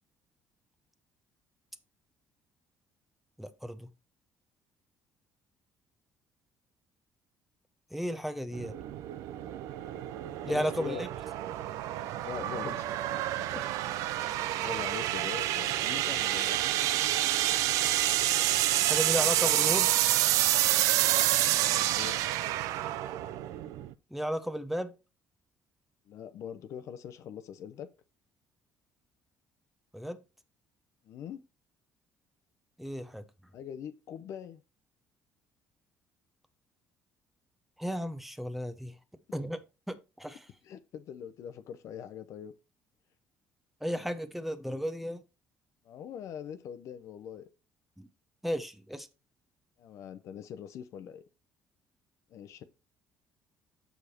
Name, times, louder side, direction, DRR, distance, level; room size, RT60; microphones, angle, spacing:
voice 1, 3.4-3.9 7.9-8.8 10.4-11.1 18.8-19.9 24.1-24.9 29.9-30.2 32.8-33.2 37.8-38.9 39.3-39.6 39.9-40.4 43.8-45.2 48.0-48.1 48.4-49.1, equal, 5° right, 0.8 m, -34 dB
sound 1, 8.5-23.9, right 13 dB, 80° right, 0.5 m, -28 dB
voice 2, 10.4-11.1 12.2-12.9 13.4-13.5 14.1-14.4 14.6-16.6 21.6-22.2 26.1-27.9 31.0-31.4 33.5-34.6 40.6-42.5 45.8-47.5 49.8-51.2 52.3-52.6, left 9 dB, 65° left, 0.7 m, -42 dB
6.7 x 4.9 x 4.3 m
cardioid pair, 95°, 6 cm